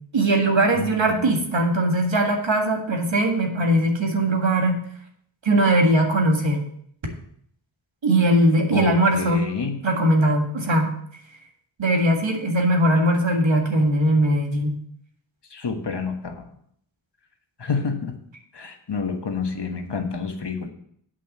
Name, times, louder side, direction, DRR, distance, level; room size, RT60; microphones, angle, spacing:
voice 1, 0.1-4.8 5.4-6.6 8.0-9.4 9.8-10.9 11.8-14.8, right 1 dB, 70° right, 1 dB, 1.9 m, -20 dB
voice 2, 0.7-1.4 8.7-9.9 15.5-16.5 17.6-18.1 18.5-20.7, left 5 dB, 60° left, 5 dB, 1.3 m, -29 dB
8.5 x 5.8 x 6.6 m, 0.66 s
wide cardioid pair, 85°, 46 cm